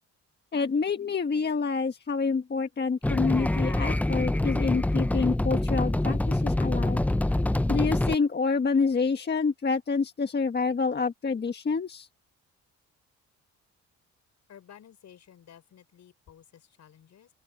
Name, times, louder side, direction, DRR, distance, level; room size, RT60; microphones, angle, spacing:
voice 1, 0.5-7.0 7.7-12.1, left 4 dB, 35° left, 1.6 m, -27 dB
sound 1, 3.0-8.1, left 1 dB, 5° left, 0.5 m, -25 dB
voice 2, 14.5-17.3, left 9 dB, 65° left, 6.2 m, -53 dB
open air
cardioid pair, 90°, 30 cm